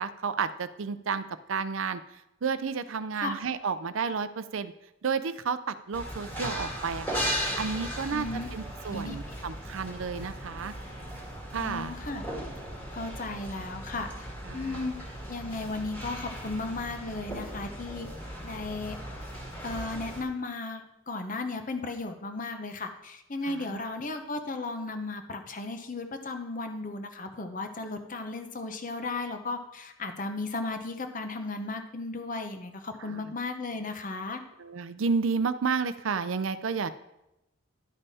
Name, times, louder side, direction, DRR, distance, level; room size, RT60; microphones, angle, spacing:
voice 1, 0.0-2.0 2.4-4.7 5.0-7.2 7.6-10.7 11.5-11.9 14.5-14.8 23.5-23.9 33.0-33.2 34.6-36.9, right 5 dB, 70° right, 13 dB, 0.5 m, -31 dB
sound 1, 5.9-20.2, equal, 10° left, 1.7 m, -37 dB
voice 2, 8.1-8.5 8.9-9.4 11.6-12.2 12.9-14.3 14.5-15.0 15.3-18.1 18.4-19.0 19.6-34.4, left 3 dB, 40° left, 7 dB, 0.8 m, -35 dB
11.0 x 5.5 x 4.2 m, 0.88 s
head